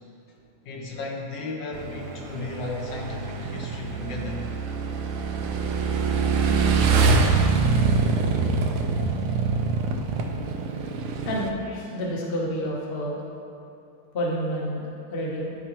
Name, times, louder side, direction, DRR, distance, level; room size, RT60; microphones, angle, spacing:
voice 1, 0.6-4.5, left 2 dB, 70° left, 0 dB, 1.4 m, -34 dB
Motorcycle / Engine, 1.7-11.5, right 4 dB, 80° right, 1.3 m, -24 dB
voice 2, 11.2-13.2 14.1-15.6, equal, 40° left, -3 dB, 0.9 m, -29 dB
12.0 x 4.9 x 2.9 m, 2.7 s
omnidirectional pair, 2.2 m